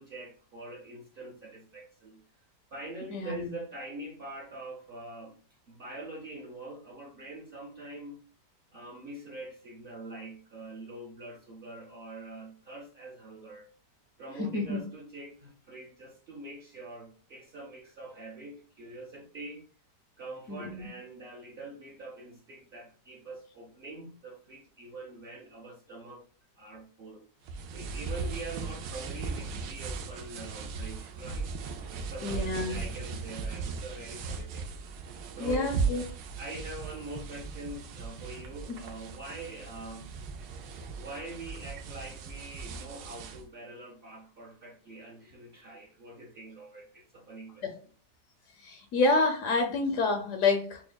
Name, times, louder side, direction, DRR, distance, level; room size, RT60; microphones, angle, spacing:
voice 1, 0.0-2.2 2.7-5.3 5.7-8.2 8.7-13.7 14.2-19.6 20.2-26.3 26.6-27.2 27.7-34.8 35.0-35.8 36.4-40.2 41.0-47.7, right 2 dB, 70° right, -3 dB, 0.5 m, -44 dB
voice 2, 3.1-3.5 14.4-14.8 20.5-20.9 32.2-32.8 35.4-36.0 47.6-47.7 48.6-50.8, left 3 dB, 70° left, 4 dB, 0.7 m, -28 dB
sound 1, 27.4-43.4, right 5 dB, 90° right, 1.3 m, -37 dB
5.8 x 2.1 x 2.2 m, 0.41 s
omnidirectional pair, 1.9 m